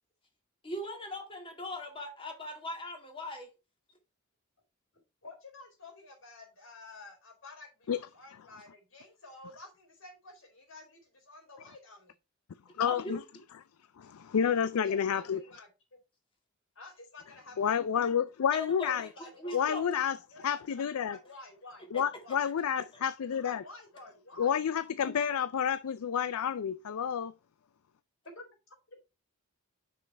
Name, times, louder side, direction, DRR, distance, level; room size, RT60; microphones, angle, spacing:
voice 1, 0.6-3.5 12.9-13.2 18.5-19.8 21.9-22.0 25.0-25.3, left 1 dB, 25° left, 2.2 m, -40 dB
voice 2, 5.2-12.1 14.8-16.0 16.8-17.8 19.1-19.7 20.3-21.9 22.2-22.5 23.4-24.6 28.3-29.0, left 2 dB, 65° left, 4.1 m, -51 dB
voice 3, 12.8-13.2 14.0-15.4 17.6-19.1 19.5-20.2 20.4-21.2 21.9-23.6 24.4-27.3, left 8 dB, 90° left, 0.4 m, -30 dB
6.2 x 5.6 x 4.4 m
head